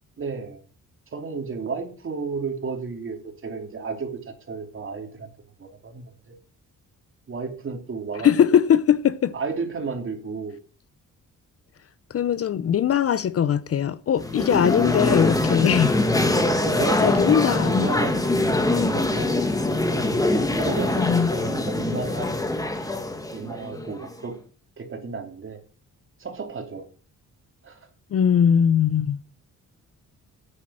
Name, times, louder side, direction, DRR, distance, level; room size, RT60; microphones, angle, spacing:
voice 1, 0.2-0.6 1.1-5.3 5.6-6.3 7.3-8.6 9.3-10.6 16.4-18.2 18.7-19.5 19.9-20.2 20.5-21.1 21.3-22.3 23.3-24.4 24.8-25.6 26.2-26.9 27.6-27.9, right 4 dB, 40° right, 2.9 m, -33 dB
voice 2, 8.2-9.3 12.1-16.0 17.0-17.9 20.9-21.3 28.1-29.2, left 8 dB, 45° left, 0.6 m, -21 dB
sound 1, 14.2-24.2, left 2 dB, 10° left, 1.4 m, -23 dB
9.8 x 8.6 x 6.2 m
cardioid pair, 140°, 32 cm